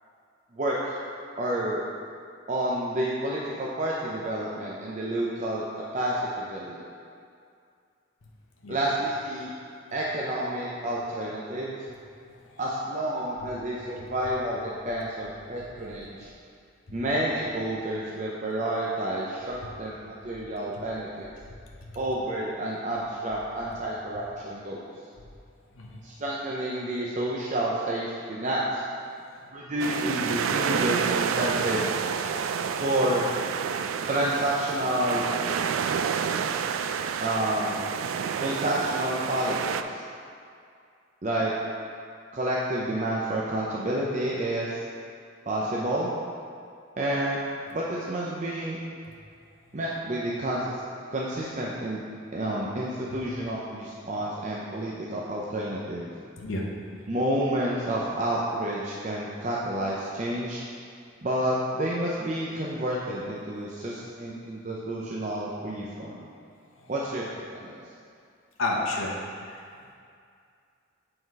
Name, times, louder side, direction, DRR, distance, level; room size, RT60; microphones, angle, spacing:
voice 1, 0.5-1.0 1.4-1.8 2.5-5.6 5.9-6.9 8.7-9.5 9.9-11.8 12.6-16.3 16.9-21.3 21.9-24.9 26.0-28.8 29.5-31.9 32.8-33.3 34.1-35.2 37.2-37.8 38.4-40.0 41.2-41.5 42.3-44.8 45.5-46.1 47.0-47.4 47.7-48.8 49.7-50.8 51.1-52.0 52.3-56.1 57.1-60.6 61.2-66.2 66.9-67.8, right 1 dB, 35° right, -5 dB, 0.6 m, -29 dB
sound 1, 29.8-39.8, right 7 dB, 80° right, 0.3 m, -29 dB
voice 2, 56.4-56.7 63.9-64.0 65.8-65.9 66.8-66.9 68.6-69.2 69.5-69.6, left 2 dB, 85° left, -2 dB, 1.0 m, -31 dB
7.8 x 3.9 x 4.7 m, 2.3 s
head